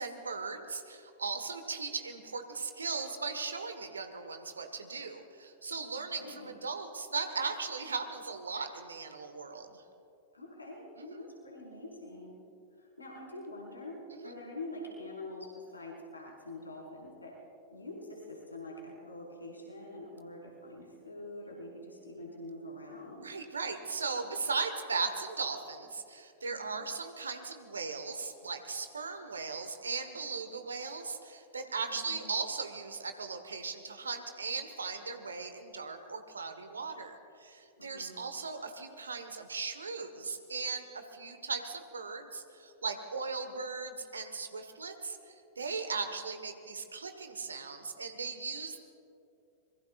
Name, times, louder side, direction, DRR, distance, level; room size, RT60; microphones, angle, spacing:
voice 1, 0.0-9.8 11.0-11.2 14.1-14.3 23.2-48.8, right 4 dB, 75° right, 7 dB, 1.3 m, -38 dB
voice 2, 6.0-6.5 10.3-12.4 12.8-17.4 17.7-23.3 26.5-26.8 31.9-32.3 37.8-38.2, left 1 dB, 85° left, -4 dB, 4.9 m, -45 dB
25.0 x 22.5 x 2.5 m, 2.6 s
figure-of-eight pair, 95°, 0 cm